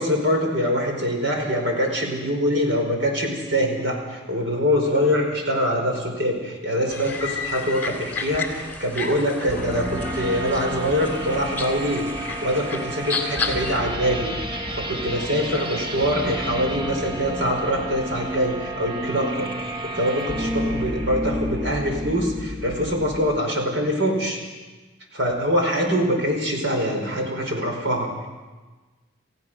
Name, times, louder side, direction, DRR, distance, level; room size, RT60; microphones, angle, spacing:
voice 1, 0.0-24.4 25.1-28.3, equal, 70° right, 2 dB, 4.9 m, -24 dB
sound 1, 6.9-13.8, left 4 dB, 10° left, 2.3 m, -32 dB
sound 2, 9.4-23.4, equal, 25° right, 1.2 m, -30 dB
29.0 x 15.5 x 6.3 m, 1.3 s
head